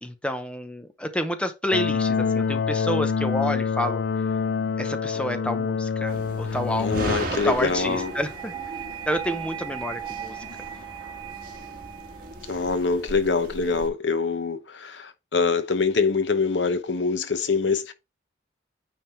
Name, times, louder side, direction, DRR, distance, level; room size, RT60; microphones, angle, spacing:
voice 1, 0.0-4.0 4.8-7.2 7.4-8.5 9.1-10.4, equal, 5° left, 0.7 m, -29 dB
sound 1, 1.7-7.1, left 5 dB, 60° left, 0.3 m, -26 dB
sound 2, 6.1-13.9, right 2 dB, 50° right, 1.7 m, -37 dB
voice 2, 6.4-8.1 12.5-17.9, left 4 dB, 80° left, 0.9 m, -25 dB
sound 3, 7.6-12.6, right 9 dB, 15° right, 2.9 m, -38 dB
9.2 x 3.4 x 4.4 m
head